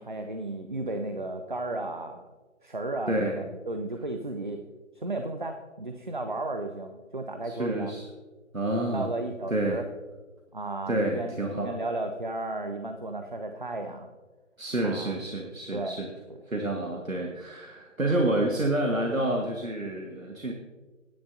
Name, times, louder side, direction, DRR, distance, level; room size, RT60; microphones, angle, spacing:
voice 1, 0.0-2.3 2.6-4.6 4.9-7.9 8.9-9.8 10.5-14.1 14.8-15.1 15.7-16.0, right 2 dB, 40° right, 5 dB, 0.6 m, -34 dB
voice 2, 3.1-3.4 7.4-8.0 8.5-9.1 9.5-9.8 10.9-11.8 14.6-16.1 16.5-20.5, right 1 dB, 90° right, 1 dB, 1.5 m, -28 dB
16.5 x 10.0 x 2.7 m, 1.3 s
figure-of-eight pair, 155°, 39 cm